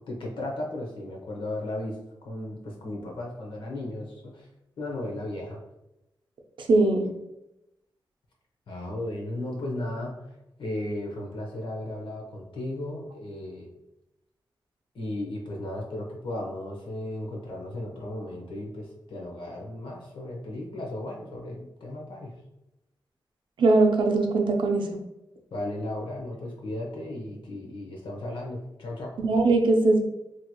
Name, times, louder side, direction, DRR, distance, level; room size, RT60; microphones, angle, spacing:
voice 1, 0.1-2.0 2.2-4.5 4.8-5.6 8.7-10.3 10.6-13.7 14.9-22.4 25.5-29.2, left 1 dB, 90° left, -1 dB, 0.8 m, -35 dB
voice 2, 6.6-7.1 23.6-25.0 29.2-30.0, right 2 dB, 80° right, 2 dB, 0.5 m, -21 dB
2.9 x 2.8 x 2.3 m, 0.91 s
wide cardioid pair, 145°, 8 cm